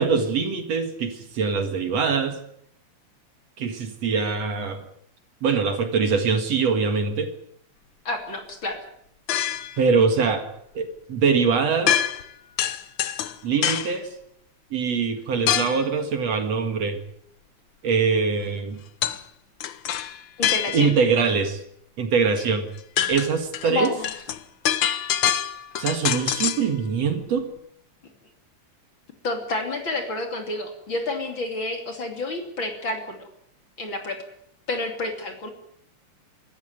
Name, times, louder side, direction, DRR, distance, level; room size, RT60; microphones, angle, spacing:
voice 1, 0.0-2.4 3.6-4.8 5.4-7.3 9.8-10.5 10.7-12.0 13.4-14.1 14.7-17.0 17.8-18.8 20.7-21.6 22.0-22.7 23.1-23.9 25.8-27.5, right 5 dB, 55° right, 7 dB, 2.9 m, -23 dB
voice 2, 8.0-8.8 20.4-20.9 23.6-24.1 29.2-33.3 33.8-34.2 34.7-35.5, left 2 dB, 40° left, 5 dB, 3.4 m, -29 dB
sound 1, 9.3-9.8 11.9-12.3 12.6-14.0 15.5-15.9 19.0-19.2 19.6-21.0 22.4-22.5 22.8-26.7, left 10 dB, 80° left, 1.0 m, -25 dB
25.5 x 14.0 x 9.5 m, 0.71 s
omnidirectional pair, 3.6 m